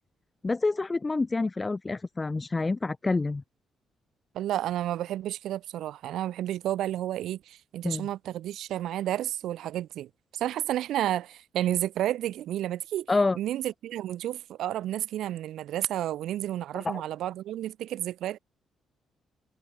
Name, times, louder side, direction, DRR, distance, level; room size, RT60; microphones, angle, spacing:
voice 1, 0.4-3.4 7.8-8.1 13.1-13.4 16.7-17.0, left 3 dB, 25° left, 0.7 m, -27 dB
voice 2, 4.3-13.1 13.3-18.4, right 12 dB, 80° right, 4.6 m, -31 dB
cardioid pair, 90°, 0 cm